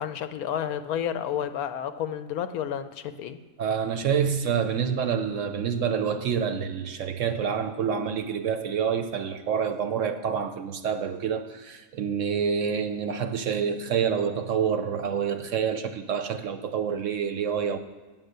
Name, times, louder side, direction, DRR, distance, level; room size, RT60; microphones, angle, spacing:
voice 1, 0.0-3.4, left 9 dB, 80° left, 10 dB, 1.1 m, -31 dB
voice 2, 3.6-17.8, right 7 dB, 65° right, 8 dB, 0.9 m, -27 dB
9.2 x 7.4 x 6.6 m, 1.4 s
omnidirectional pair, 1.6 m